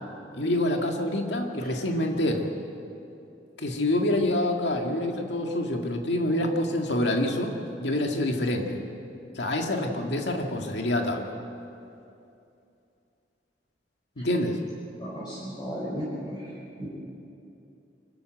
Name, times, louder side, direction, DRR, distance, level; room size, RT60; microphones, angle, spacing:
voice 1, 0.3-2.5 3.6-7.5 7.8-8.8 9.4-11.3 14.2-14.6, left 1 dB, 80° left, 2 dB, 2.1 m, -26 dB
voice 2, 15.0-16.4 16.8-16.9, equal, 25° left, -8 dB, 5.0 m, -34 dB
25.5 x 14.5 x 7.9 m, 2.7 s
head